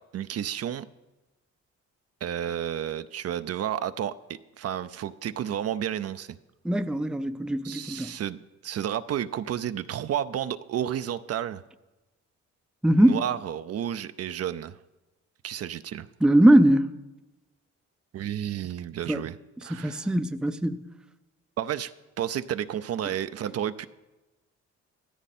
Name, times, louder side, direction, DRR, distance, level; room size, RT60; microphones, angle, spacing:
voice 1, 0.1-0.9 2.2-6.4 7.6-11.6 13.0-14.8 15.4-16.1 18.1-19.4 19.6-20.1 21.6-21.9 22.2-23.9, right 10 dB, 55° right, 0.5 m, -31 dB
voice 2, 6.6-8.1 12.8-13.2 16.2-16.9 19.1-19.2 19.7-20.8, right 1 dB, 5° right, 0.5 m, -21 dB
14.5 x 13.5 x 4.3 m
cardioid pair, 90°, 30 cm